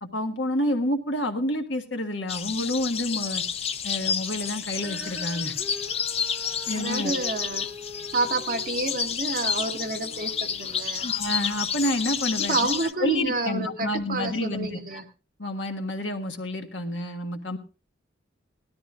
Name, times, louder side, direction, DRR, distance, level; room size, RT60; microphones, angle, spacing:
voice 1, 0.0-3.4 3.8-5.5 6.7-7.1 11.0-12.6 13.0-15.0 15.4-17.6, left 1 dB, 70° left, 4 dB, 1.7 m, -29 dB
sound 1, 2.3-12.9, left 7 dB, 30° left, 0.5 m, -30 dB
Female singing, 4.8-11.1 11.8-11.9, left 1 dB, 5° right, 4.4 m, -44 dB
voice 2, 6.8-7.7 8.1-11.1 12.4-15.0, right 2 dB, 45° right, 2 dB, 1.7 m, -29 dB
19.0 x 13.0 x 2.5 m, 0.33 s
head